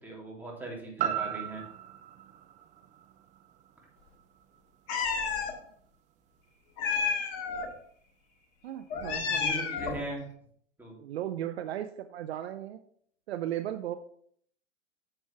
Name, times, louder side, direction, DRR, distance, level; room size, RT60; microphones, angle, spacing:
voice 1, 0.0-1.6 9.2-10.2 10.8-10.9, right 2 dB, 5° right, -3 dB, 3.0 m, -39 dB
sound 1, 1.0-5.1 5.5-5.6, right 10 dB, 20° right, 0.5 m, -37 dB
Meow, 4.9-5.5 6.8-7.7 8.9-10.0, left 5 dB, 40° left, 1.9 m, -30 dB
voice 2, 8.6-9.7 11.0-12.8 13.3-14.0, right 12 dB, 60° right, 10 dB, 0.7 m, -36 dB
9.8 x 7.1 x 3.4 m, 0.63 s
hypercardioid pair, 110°, 37 cm